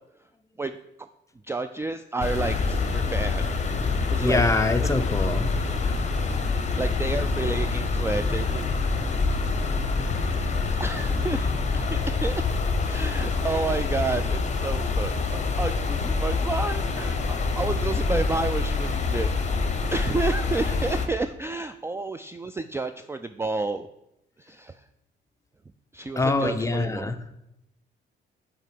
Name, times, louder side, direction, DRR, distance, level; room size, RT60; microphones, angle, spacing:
voice 1, 1.4-3.5 4.1-4.4 6.8-8.6 8.9-9.0 10.8-12.5 12.8-19.3 19.9-23.9 24.4-24.7 25.9-27.1, right 3 dB, 15° right, 10 dB, 0.3 m, -30 dB
sound 1, 2.2-21.1, left 4 dB, 35° left, 1.2 m, -26 dB
voice 2, 4.2-5.5 26.2-27.2, left 2 dB, 15° left, 7 dB, 0.7 m, -24 dB
6.3 x 4.8 x 6.7 m, 0.85 s
cardioid pair, 90°, 20 cm